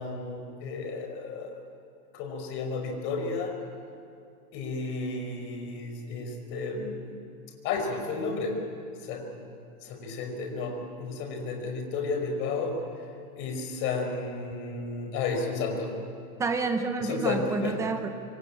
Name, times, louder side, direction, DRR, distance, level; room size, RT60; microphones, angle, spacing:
voice 1, 0.0-1.5 2.1-3.6 4.5-7.1 7.6-8.6 9.0-9.3 9.8-13.1 13.3-16.0 17.0-17.8, left 4 dB, 25° left, 4 dB, 5.0 m, -32 dB
voice 2, 16.4-18.1, right 4 dB, 5° right, 7 dB, 0.7 m, -29 dB
25.5 x 25.0 x 8.8 m, 2.4 s
hypercardioid pair, 160°, 45 cm